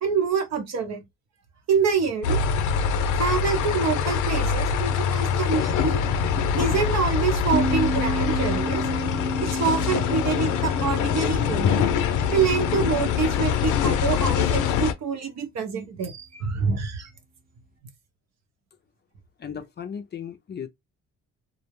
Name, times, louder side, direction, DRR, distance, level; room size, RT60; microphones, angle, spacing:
voice 1, 0.0-1.0 1.7-2.4 3.1-6.0 6.6-8.8 9.4-11.9 12.3-17.1, right 5 dB, 60° right, 0.9 m, -26 dB
sound 1, 2.2-14.9, left 7 dB, 85° left, 0.5 m, -24 dB
sound 2, 7.5-12.8, right 1 dB, 30° right, 0.8 m, -31 dB
voice 2, 19.4-20.7, left 7 dB, 35° left, 0.5 m, -36 dB
2.4 x 2.0 x 3.0 m
cardioid pair, 90°, 30 cm